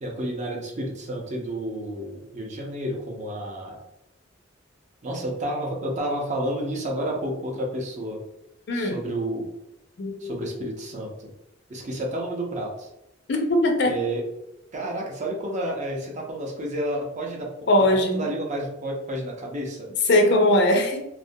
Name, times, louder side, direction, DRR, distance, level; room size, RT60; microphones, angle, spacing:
voice 1, 0.0-3.8 5.0-8.2 8.7-9.5 10.2-11.3 11.7-12.9 13.8-14.2 14.7-17.5 17.8-19.9, right 1 dB, 40° right, -1 dB, 0.5 m, -30 dB
voice 2, 10.0-10.6 13.3-14.0 17.7-18.3 20.1-21.0, left 1 dB, 60° left, 4 dB, 0.4 m, -20 dB
2.4 x 2.1 x 2.6 m, 0.86 s
head